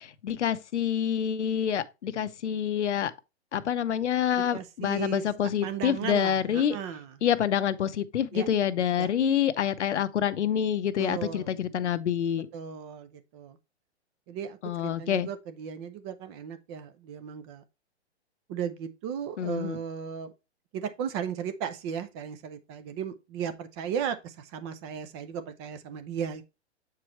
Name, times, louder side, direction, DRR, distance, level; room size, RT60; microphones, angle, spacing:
voice 1, 0.0-3.1 3.5-6.8 7.2-12.5 14.6-15.3 19.4-19.8, left 9 dB, 80° left, 0.8 m, -27 dB
voice 2, 4.5-5.2 5.6-7.2 8.3-8.5 9.0-9.1 11.0-11.5 12.5-13.6 14.3-17.6 18.5-20.3 20.7-26.4, right 8 dB, 25° right, 0.5 m, -35 dB
7.5 x 4.7 x 3.1 m
hypercardioid pair, 135°, 34 cm